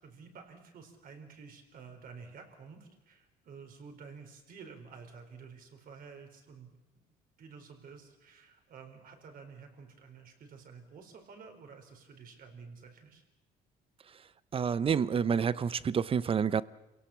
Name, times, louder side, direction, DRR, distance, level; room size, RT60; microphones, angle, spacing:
voice 1, 0.0-6.8 7.4-13.2, right 5 dB, 60° right, 4 dB, 4.5 m, -51 dB
voice 2, 14.5-16.6, right 7 dB, 35° right, 18 dB, 0.7 m, -28 dB
28.0 x 17.5 x 7.3 m, 1.0 s
cardioid pair, 110°, 17 cm